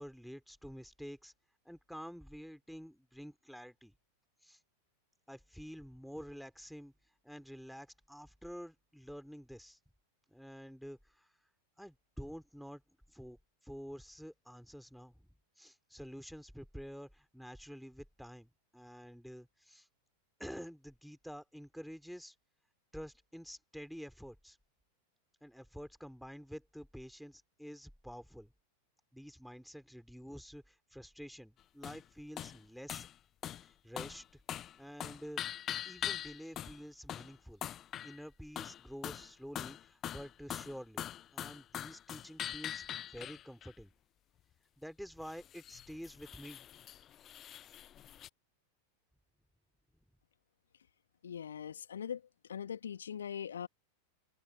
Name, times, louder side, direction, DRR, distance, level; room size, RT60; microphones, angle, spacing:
voice 1, 0.0-1.3 1.6-3.9 4.4-4.6 5.3-6.9 7.2-9.8 10.3-11.3 11.8-12.8 13.1-15.3 15.6-19.9 20.4-22.3 22.9-24.6 25.4-28.5 29.1-33.1 33.6-34.4 34.8-35.4 35.8-37.6 38.0-41.1 41.3-43.9 44.8-46.6, equal, ahead, 3.4 m, -49 dB
sound 1, 31.8-32.0 32.4-32.6 32.9-33.1 33.4-33.7 34.0-34.2 34.5-34.8 35.0-36.8 37.1-37.3 37.6-38.2 38.6-39.3 39.6-43.7 45.3-48.3, left 11 dB, 30° left, 0.8 m, -42 dB
voice 2, 51.2-52.2 52.5-53.7, left 8 dB, 65° left, 2.1 m, -41 dB
figure-of-eight pair, 90°, 0 cm